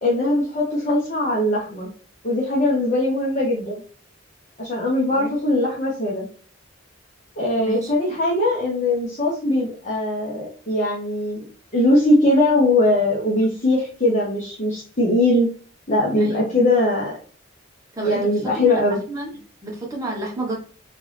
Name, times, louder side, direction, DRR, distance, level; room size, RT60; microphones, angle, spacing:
voice 1, 0.0-1.9 2.2-3.8 4.6-6.3 7.4-11.5 11.7-15.5 15.9-17.2 18.0-19.0, left 1 dB, 40° left, -4 dB, 1.1 m, -20 dB
voice 2, 7.6-7.9 16.2-16.6 18.0-18.7 19.1-19.3 19.6-20.6, right 1 dB, 20° right, -2 dB, 1.3 m, -30 dB
3.7 x 3.5 x 3.4 m, 0.42 s
head